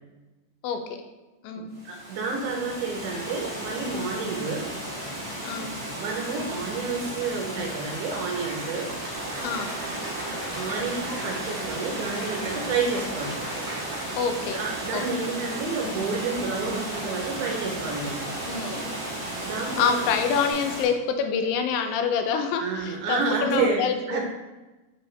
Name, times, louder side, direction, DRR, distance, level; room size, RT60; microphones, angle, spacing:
voice 1, 1.6-4.7 6.0-8.9 10.6-13.4 14.5-18.3 19.4-20.0 22.6-24.2, right 4 dB, 75° right, 1 dB, 2.0 m, -30 dB
Water, 1.7-20.8, equal, 15° right, 0.8 m, -35 dB
voice 2, 5.4-5.8 9.4-9.8 14.2-14.6 14.9-15.0 15.8-16.1 18.5-18.9 19.8-24.2, left 6 dB, 90° left, 6 dB, 2.4 m, -26 dB
Cheering / Applause, 7.6-14.3, equal, 40° right, 2.1 m, -40 dB
sound 1, 9.1-20.5, right 3 dB, 60° right, 2.3 m, -37 dB
5.4 x 5.4 x 3.2 m, 1.1 s
omnidirectional pair, 4.1 m